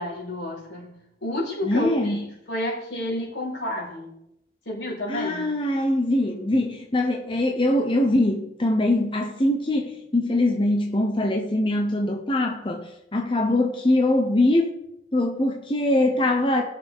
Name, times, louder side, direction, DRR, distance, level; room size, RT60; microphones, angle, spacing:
voice 1, 0.0-4.1 4.7-5.6, left 1 dB, 80° left, -4 dB, 4.4 m, -31 dB
voice 2, 1.6-2.2 5.1-14.8 15.1-16.6, left 1 dB, 25° left, 2 dB, 0.8 m, -22 dB
18.0 x 6.8 x 3.6 m, 0.84 s
head